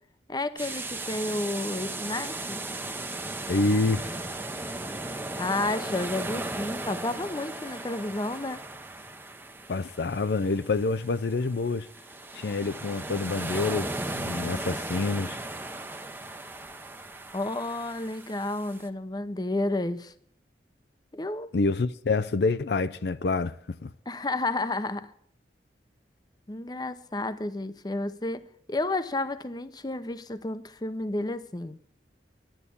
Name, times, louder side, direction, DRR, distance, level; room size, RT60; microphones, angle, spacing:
voice 1, 0.3-2.6 5.4-8.6 17.3-20.1 21.1-21.5 24.1-25.1 26.5-31.8, left 2 dB, 25° left, 0.7 m, -31 dB
sound 1, 0.6-18.9, right 2 dB, 10° right, 0.7 m, -37 dB
voice 2, 3.5-4.2 9.7-11.9 12.3-15.4 21.5-23.9, left 3 dB, 65° left, 0.5 m, -27 dB
11.0 x 10.5 x 8.5 m
head